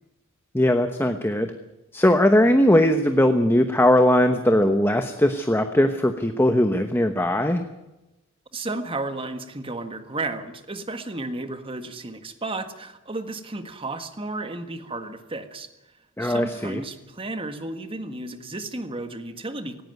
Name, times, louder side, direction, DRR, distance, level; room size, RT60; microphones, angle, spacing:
voice 1, 0.5-1.5 1.9-7.6 16.2-16.8, left 1 dB, 10° left, 7 dB, 1.0 m, -19 dB
voice 2, 8.5-15.7 16.2-19.8, right 2 dB, 25° right, 8 dB, 1.6 m, -33 dB
17.5 x 17.0 x 9.2 m, 0.98 s
head